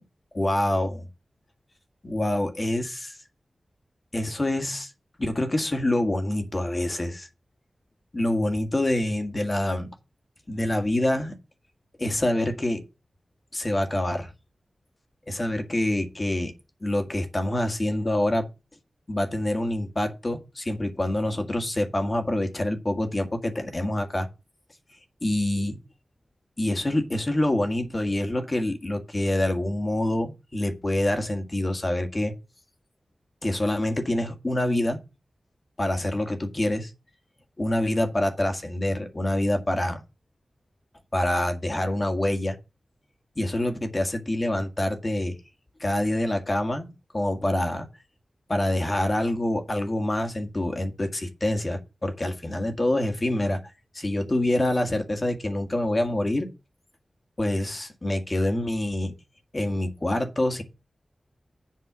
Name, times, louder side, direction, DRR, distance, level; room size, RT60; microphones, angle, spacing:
voice 1, 0.3-1.1 2.0-3.2 4.1-4.9 5.2-7.3 8.1-9.9 10.5-11.3 12.0-12.8 13.5-14.3 15.3-16.5 16.8-18.5 19.1-24.3 25.2-25.8 26.6-32.3 33.4-35.0 35.8-36.9 37.6-40.0 41.1-42.6 43.3-45.4 45.8-47.9 48.5-53.6 53.9-56.5 57.4-59.1 59.5-60.6, left 1 dB, 30° left, 1.7 m, -26 dB
7.7 x 5.3 x 7.0 m
wide cardioid pair, 85°, 0 cm